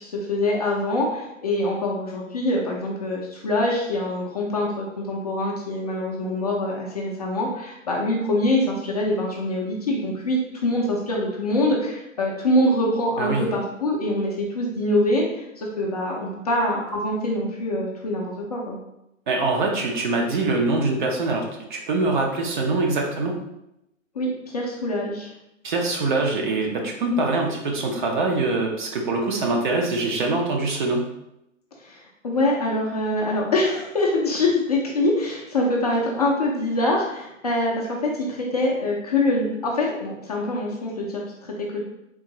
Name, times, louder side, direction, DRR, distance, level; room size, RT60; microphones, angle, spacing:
voice 1, 0.0-18.8 24.1-25.3 31.8-41.2 41.6-41.8, left 1 dB, 30° left, -2 dB, 0.4 m, -24 dB
voice 2, 19.3-23.3 25.6-31.0, right 3 dB, 40° right, 1 dB, 0.6 m, -24 dB
3.7 x 2.5 x 2.9 m, 0.85 s
figure-of-eight pair, 125°, 40 cm